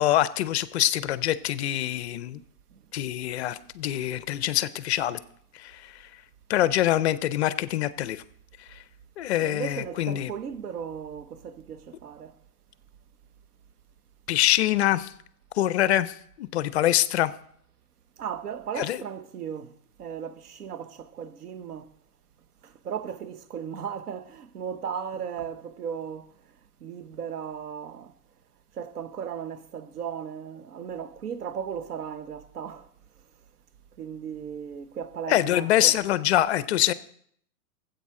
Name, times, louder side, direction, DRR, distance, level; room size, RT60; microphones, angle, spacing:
voice 1, 0.0-2.4 2.9-5.2 5.5-6.1 6.5-8.2 8.7-8.8 9.2-10.3 14.3-15.1 15.6-17.3 18.8-19.0 35.3-36.9, left 13 dB, 50° left, 0.5 m, -25 dB
voice 2, 9.4-12.4 18.2-21.9 22.6-26.3 26.8-28.1 28.7-32.9 34.0-35.9, right 7 dB, 90° right, 1.0 m, -36 dB
14.0 x 8.1 x 3.7 m
hypercardioid pair, 150°, 45 cm